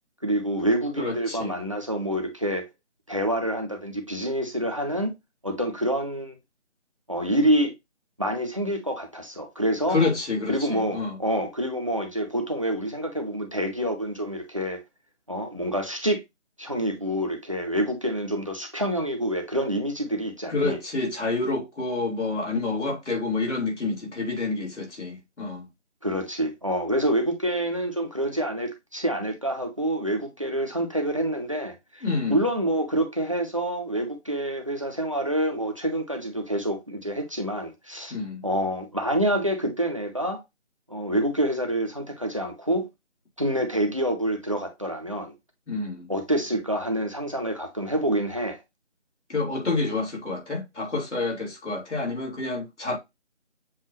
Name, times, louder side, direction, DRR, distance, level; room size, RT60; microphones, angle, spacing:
voice 1, 0.2-2.7 3.1-5.1 5.4-6.4 7.1-7.7 8.2-10.0 10.5-14.8 15.3-16.2 16.6-20.8 26.0-32.0 32.3-38.1 38.4-40.4 40.9-42.9 43.4-45.3 46.1-48.6, right 1 dB, 30° right, 0.6 m, -27 dB
voice 2, 1.0-1.6 9.9-11.2 20.5-25.7 32.0-32.4 38.1-38.4 45.7-46.1 49.3-53.0, left 3 dB, 75° left, 2.6 m, -28 dB
7.3 x 2.5 x 2.9 m
figure-of-eight pair, 170°, 36 cm